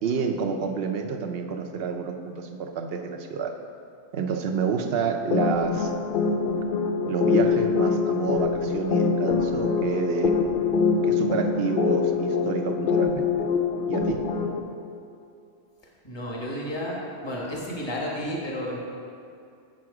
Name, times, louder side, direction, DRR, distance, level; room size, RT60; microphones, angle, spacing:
voice 1, 0.0-3.5 4.1-5.9 7.1-10.3 11.0-13.5 13.9-14.2, right 5 dB, 60° right, 4 dB, 0.9 m, -29 dB
sound 1, 5.3-14.6, left 5 dB, 55° left, 0.7 m, -24 dB
voice 2, 16.0-18.8, equal, 25° left, -3 dB, 1.3 m, -32 dB
7.6 x 7.1 x 4.8 m, 2.5 s
omnidirectional pair, 1.2 m